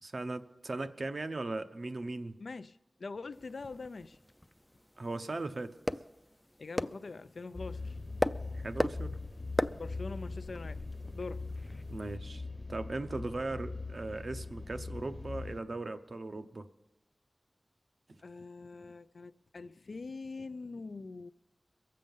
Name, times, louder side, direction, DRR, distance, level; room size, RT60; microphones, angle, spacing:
voice 1, 0.0-2.4 5.0-5.8 8.5-9.2 11.9-12.4 12.7-16.7, right 2 dB, 70° right, 0.7 m, -38 dB
voice 2, 2.4-4.2 6.6-8.0 9.8-11.8 18.2-21.3, left 3 dB, 90° left, 0.3 m, -44 dB
sound 1, 3.3-12.2, left 1 dB, 15° left, 0.4 m, -39 dB
sound 2, 7.5-15.6, left 3 dB, 45° left, 1.0 m, -41 dB
22.5 x 7.6 x 5.4 m
wide cardioid pair, 70°, 0 cm